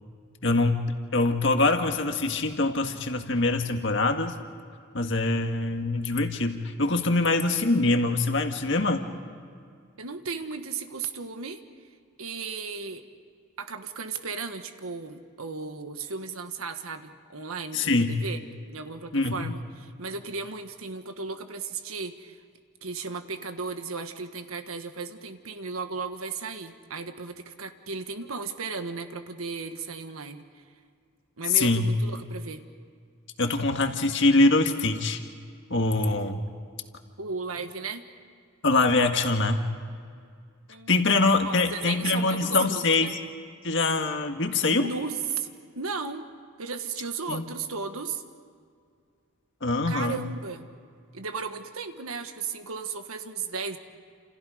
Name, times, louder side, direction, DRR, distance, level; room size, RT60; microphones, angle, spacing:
voice 1, 0.4-0.8 1.1-4.4 4.9-9.1 17.7-18.1 19.1-19.4 31.5-31.9 33.4-35.2 35.7-36.5 38.6-39.6 40.9-43.2 43.6-44.9 47.3-47.4 49.6-50.2, left 2 dB, 55° left, 5 dB, 1.9 m, -24 dB
voice 2, 10.0-11.6 12.2-13.0 13.6-18.4 18.7-22.4 22.8-30.6 31.4-32.6 37.2-38.0 40.7-43.1 44.7-45.5 45.7-46.2 46.6-48.2 49.9-50.6 51.1-53.8, right 4 dB, 80° right, 7 dB, 1.6 m, -35 dB
29.5 x 28.5 x 5.1 m, 2.2 s
head